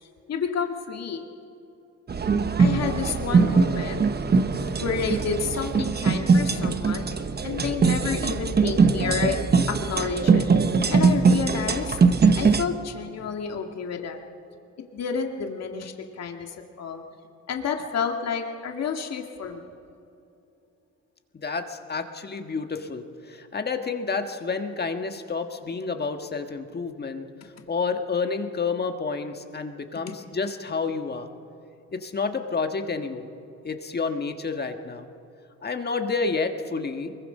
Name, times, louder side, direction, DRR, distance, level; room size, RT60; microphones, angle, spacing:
voice 1, 0.3-1.2 2.6-4.0 4.6-7.1 7.4-9.4 9.7-10.5 10.9-12.0 12.4-14.2 14.9-17.0 17.5-19.7, left 6 dB, 60° left, 4 dB, 1.9 m, -30 dB
sound 1, 2.1-12.6, right 4 dB, 35° right, 1.1 m, -21 dB
voice 2, 21.4-27.2 27.7-31.3 31.9-33.2 33.6-35.1 35.6-37.1, left 4 dB, 35° left, 6 dB, 1.6 m, -29 dB
23.5 x 22.0 x 5.5 m, 2.7 s
cardioid pair, 90°, 30 cm